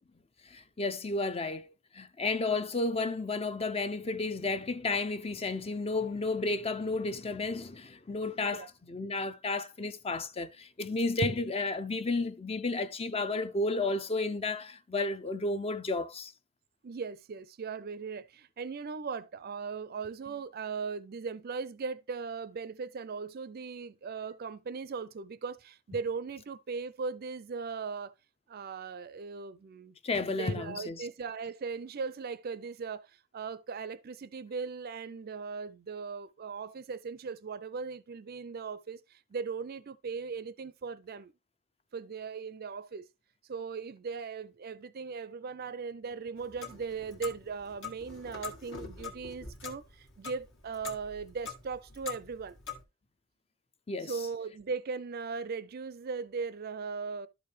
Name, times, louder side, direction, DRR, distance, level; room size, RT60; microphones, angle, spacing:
voice 1, 0.5-16.3 30.0-31.0 53.9-54.1, left 3 dB, 30° left, 0.5 m, -32 dB
voice 2, 16.8-28.1 28.5-30.0 30.3-41.3 41.9-43.1 43.5-52.6 54.0-57.3, right 5 dB, 45° right, 0.4 m, -38 dB
Clock, 46.4-52.8, left 5 dB, 65° left, 1.6 m, -44 dB
12.0 x 4.7 x 3.2 m
head